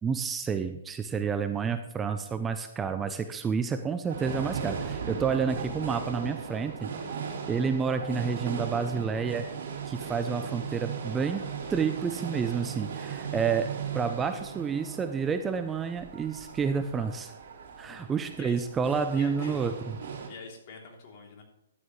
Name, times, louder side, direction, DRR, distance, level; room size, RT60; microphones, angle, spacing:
voice 1, 0.0-6.9 7.5-9.4 9.8-11.4 11.7-13.7 13.9-17.3 17.8-20.0, right 6 dB, 15° right, 8 dB, 0.6 m, -29 dB
sound 1, 4.1-20.3, right 6 dB, 65° right, 3.7 m, -37 dB
voice 2, 17.8-18.6 19.1-19.7 20.3-21.4, left 4 dB, 45° left, 0 dB, 3.1 m, -47 dB
13.0 x 10.5 x 3.2 m, 0.83 s
hypercardioid pair, 145°, 0 cm